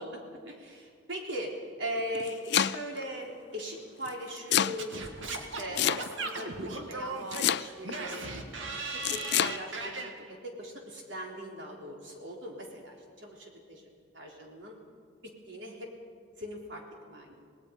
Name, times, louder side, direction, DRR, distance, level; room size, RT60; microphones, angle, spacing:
voice 1, 0.0-1.5 1.8-8.3 9.1-13.9 14.1-14.8 15.2-15.9 16.4-16.8 17.1-17.4, equal, 70° right, 0 dB, 3.9 m, -40 dB
Domestic sounds home sounds, 2.0-3.0 4.1-4.8 5.8-6.4 7.3-8.0 9.0-9.6, left 10 dB, 60° left, 0.5 m, -27 dB
Singing / Scratching (performance technique), 4.8-10.1, right 3 dB, 90° right, 2.1 m, -37 dB
27.0 x 19.0 x 5.4 m, 2.1 s
head